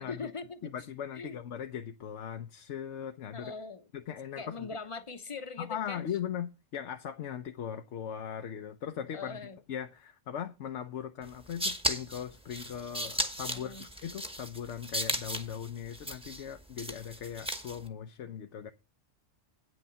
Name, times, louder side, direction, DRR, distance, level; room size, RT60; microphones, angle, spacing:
voice 1, 0.1-0.7 1.1-1.4 3.3-3.9 4.4-6.0 9.1-9.6 13.5-13.9, left 4 dB, 30° left, 0.8 m, -41 dB
voice 2, 0.7-3.5 3.9-4.7 5.6-9.4 9.7-18.7, left 9 dB, 70° left, 1.0 m, -39 dB
sound 1, 11.3-17.9, right 1 dB, 5° right, 1.0 m, -36 dB
8.9 x 6.3 x 6.8 m
omnidirectional pair, 1.3 m